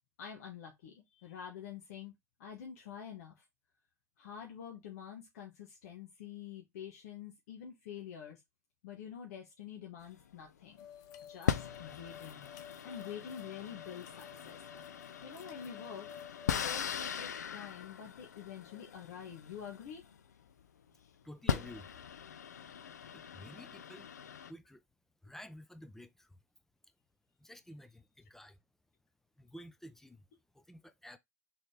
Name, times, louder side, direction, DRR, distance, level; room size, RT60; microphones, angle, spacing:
voice 1, 0.2-2.1 2.4-3.4 4.2-8.4 8.8-10.9 11.3-12.5 12.8-14.6 15.2-16.1 16.4-20.0, left 8 dB, 70° left, 1.3 m, -47 dB
sound 1, 10.0-10.8 11.5-20.6 21.1-21.2 21.5-24.5, left 8 dB, 85° left, 0.5 m, -40 dB
sound 2, 10.8-16.5, left 9 dB, 50° left, 0.8 m, -52 dB
voice 2, 21.2-22.0 23.1-24.1 24.5-24.8 25.2-26.4 27.4-28.6 29.4-30.2 30.5-31.2, equal, 5° left, 0.7 m, -51 dB
4.2 x 3.8 x 3.3 m
hypercardioid pair, 90°, 9 cm